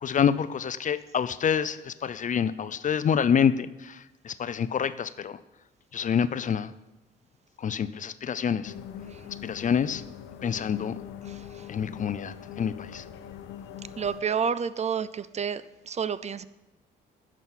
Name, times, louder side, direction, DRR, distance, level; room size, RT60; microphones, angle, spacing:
voice 1, 0.0-5.4 5.9-6.7 7.6-8.7 9.4-10.0 10.4-10.9 11.7-13.0, left 7 dB, 40° left, 15 dB, 0.5 m, -27 dB
sound 1, 8.6-14.2, left 10 dB, 90° left, 0.7 m, -42 dB
voice 2, 14.0-15.6 15.9-16.5, right 6 dB, 35° right, 15 dB, 0.4 m, -29 dB
11.0 x 6.2 x 5.8 m, 1.0 s
cardioid pair, 90°, 20 cm